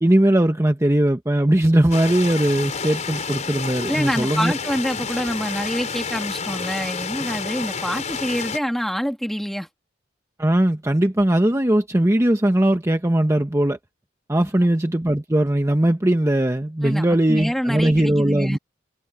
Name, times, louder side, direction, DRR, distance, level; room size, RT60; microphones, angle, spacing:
voice 1, 0.0-4.5 10.4-13.8 14.3-18.6, right 1 dB, 15° right, 1.0 m, -19 dB
sound 1, 1.9-8.6, left 5 dB, 40° left, 4.8 m, -30 dB
voice 2, 3.9-9.7 14.4-14.5 16.8-18.6, equal, ahead, 1.9 m, -26 dB
head